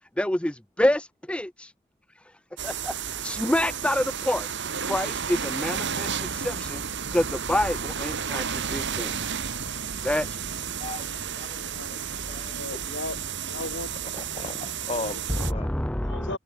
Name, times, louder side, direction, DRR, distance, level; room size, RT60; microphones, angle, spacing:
voice 1, 0.2-1.7 2.2-2.3 2.6-4.5 4.8-9.1 10.0-10.4 15.5-16.4, left 1 dB, 5° left, 0.5 m, -28 dB
sound 1, 2.6-15.5, right 7 dB, 55° right, 3.4 m, -32 dB
voice 2, 10.8-12.6 14.1-15.7, left 2 dB, 25° left, 7.0 m, -37 dB
voice 3, 11.7-13.9 14.9-15.4 16.0-16.4, left 2 dB, 55° left, 4.1 m, -38 dB
head